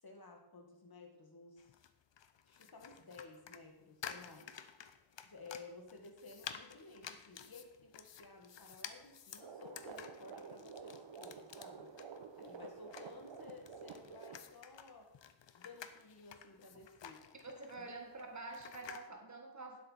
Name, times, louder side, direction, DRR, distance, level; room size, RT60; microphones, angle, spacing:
voice 1, 0.0-1.8 2.5-4.6 5.2-11.9 12.4-15.1 15.5-17.2 17.8-17.9, left 3 dB, 50° left, 3 dB, 1.9 m, -55 dB
sound 1, 1.6-19.1, left 8 dB, 70° left, 0.8 m, -52 dB
sound 2, 9.4-14.4, right 6 dB, 70° right, 1.0 m, -50 dB
voice 2, 17.4-19.8, right 3 dB, 35° right, 2 dB, 1.8 m, -47 dB
9.5 x 7.8 x 5.7 m, 0.89 s
wide cardioid pair, 130°, 46 cm